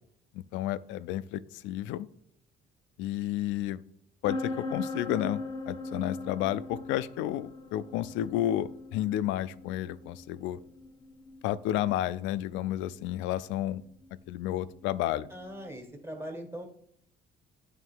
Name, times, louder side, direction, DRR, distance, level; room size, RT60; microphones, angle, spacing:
voice 1, 0.3-2.1 3.0-3.8 4.2-10.6 11.4-13.8 14.3-15.3, left 13 dB, 85° left, 16 dB, 0.4 m, -31 dB
sound 1, 4.2-15.8, left 2 dB, 25° left, 0.9 m, -41 dB
voice 2, 15.3-16.7, equal, 15° right, 3 dB, 1.5 m, -40 dB
9.2 x 3.2 x 4.5 m, 0.67 s
cardioid pair, 110°, 19 cm